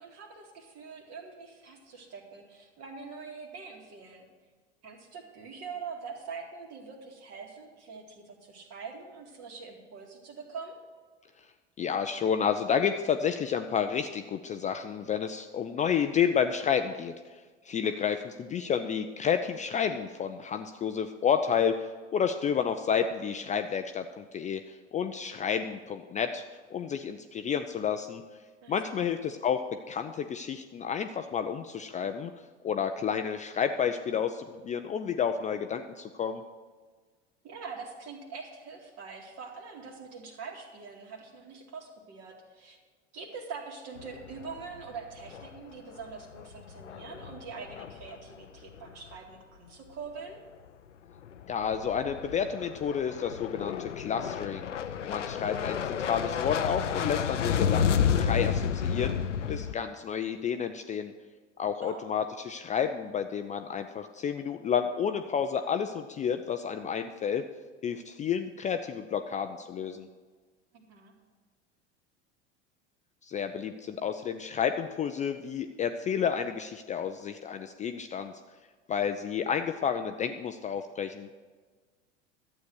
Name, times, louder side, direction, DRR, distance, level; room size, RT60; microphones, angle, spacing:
voice 1, 0.0-4.2 4.8-10.8 17.8-18.2 28.6-29.1 37.4-42.8 43.1-50.4 61.8-62.1 70.7-71.1, right 5 dB, 45° right, 2 dB, 2.3 m, -44 dB
voice 2, 11.8-26.4 26.7-28.2 28.7-32.3 32.6-36.4 51.5-54.7 55.1-59.2 59.5-61.1 61.6-67.4 67.8-70.1 73.2-78.3 78.9-81.3, left 7 dB, 20° left, 7 dB, 0.4 m, -30 dB
sound 1, 44.0-44.9 45.2-45.6 46.0-48.4 48.7-49.1 51.2-59.7, left 7 dB, 85° left, 0.5 m, -31 dB
12.0 x 8.2 x 6.3 m, 1.4 s
figure-of-eight pair, 75°, 35 cm